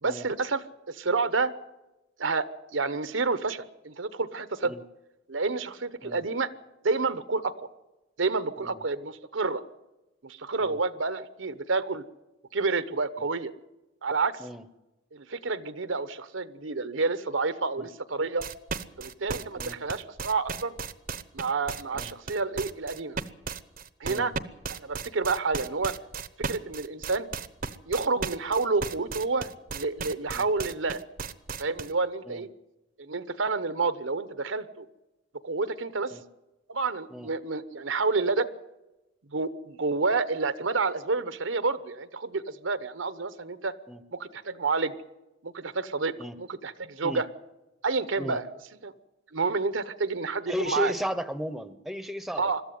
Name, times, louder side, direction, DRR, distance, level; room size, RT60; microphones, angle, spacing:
voice 1, 0.0-1.5 2.2-4.8 5.3-6.5 6.8-7.7 8.2-9.6 10.2-12.0 12.5-13.5 14.0-14.4 15.1-18.5 19.0-20.7 21.3-23.2 24.0-24.3 24.7-25.9 26.4-27.3 27.9-31.0 31.6-32.5 33.0-34.9 35.4-36.1 36.7-38.5 39.3-43.7 44.1-45.0 45.4-47.2 47.8-48.5 48.8-48.9 49.3-50.9 52.4-52.6, right 4 dB, 75° right, 14 dB, 1.0 m, -29 dB
sound 1, 18.4-31.9, right 5 dB, 50° right, 0.8 m, -35 dB
voice 2, 50.5-52.5, equal, ahead, 13 dB, 0.8 m, -35 dB
22.0 x 13.5 x 9.4 m, 1.0 s
head